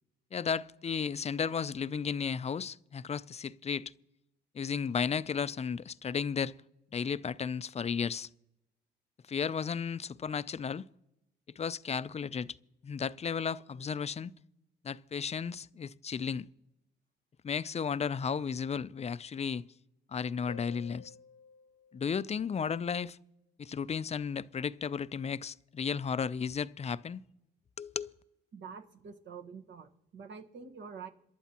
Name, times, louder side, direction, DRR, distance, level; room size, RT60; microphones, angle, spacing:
voice 1, 0.3-3.9 4.5-6.5 6.9-8.3 9.3-10.8 11.6-12.5 12.8-14.3 14.8-16.5 17.4-19.6 20.1-21.1 21.9-23.2 23.6-27.2 27.8-28.1, left 6 dB, 30° left, 0.5 m, -34 dB
Harp, 20.5-23.0 26.5-26.6, left 6 dB, 80° left, 0.5 m, -54 dB
voice 2, 28.5-31.1, right 6 dB, 65° right, 1.5 m, -47 dB
27.5 x 11.5 x 3.0 m
supercardioid pair, 60°, 20 cm